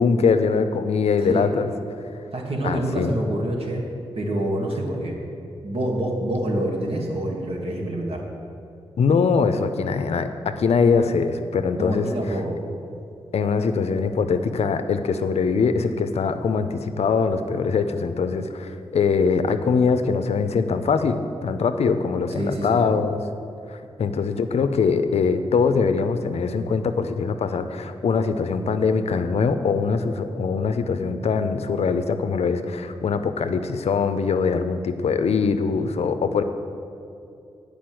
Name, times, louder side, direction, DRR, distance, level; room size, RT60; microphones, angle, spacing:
voice 1, 0.0-1.7 2.6-3.1 9.0-12.4 13.3-23.2 23.7-36.4, left 5 dB, 75° left, 9 dB, 0.6 m, -22 dB
voice 2, 2.3-3.8 4.1-5.1 5.6-8.2 11.8-12.6 22.3-22.8, right 1 dB, 60° right, -1 dB, 1.9 m, -26 dB
8.7 x 5.0 x 7.6 m, 2.7 s
cardioid pair, 65°, 11 cm